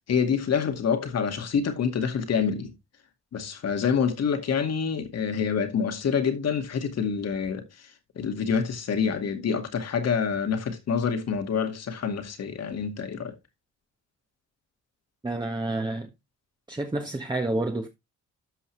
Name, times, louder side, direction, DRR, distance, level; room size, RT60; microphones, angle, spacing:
voice 1, 0.1-2.7 3.3-7.7 8.2-13.4, left 6 dB, 55° left, 2.3 m, -27 dB
voice 2, 15.2-16.1 16.7-17.9, right 2 dB, 15° right, 1.5 m, -29 dB
13.0 x 5.4 x 3.3 m
cardioid pair, 90°, 30 cm